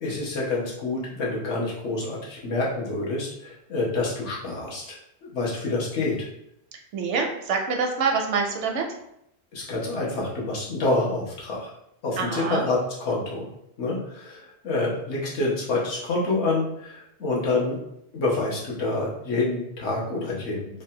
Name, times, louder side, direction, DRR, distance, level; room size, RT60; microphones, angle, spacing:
voice 1, 0.0-5.0 5.2-6.2 9.5-11.7 12.0-13.5 13.8-17.8 18.1-20.8, left 2 dB, 75° left, -5 dB, 1.2 m, -27 dB
voice 2, 6.9-8.9 12.2-12.7, right 5 dB, 85° right, 2 dB, 0.9 m, -26 dB
3.2 x 2.2 x 2.7 m, 0.77 s
omnidirectional pair, 1.2 m